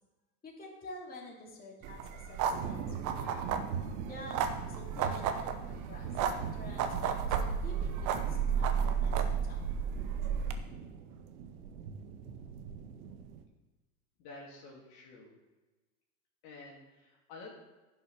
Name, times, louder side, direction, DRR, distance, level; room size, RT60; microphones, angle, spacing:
voice 1, 0.4-3.5 4.1-9.6, left 1 dB, 20° left, -3 dB, 3.2 m, -49 dB
sound 1, 1.8-10.5, right 7 dB, 40° right, 1.1 m, -33 dB
sound 2, 2.5-13.4, right 6 dB, 65° right, 1.5 m, -41 dB
voice 2, 14.2-15.3 16.4-17.5, left 3 dB, 50° left, -2 dB, 3.0 m, -50 dB
10.5 x 6.3 x 6.2 m, 1.2 s
hypercardioid pair, 120°, 48 cm